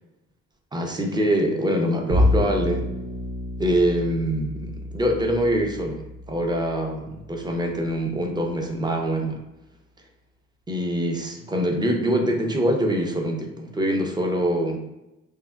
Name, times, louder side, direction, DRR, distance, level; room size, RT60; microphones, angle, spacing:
voice 1, 0.7-2.9 3.6-9.4 10.7-14.8, equal, 15° right, 2 dB, 0.4 m, -24 dB
Bowed string instrument, 2.1-8.5, left 1 dB, 80° right, 0.7 m, -29 dB
3.4 x 2.1 x 2.2 m, 0.94 s
cardioid pair, 90°, 30 cm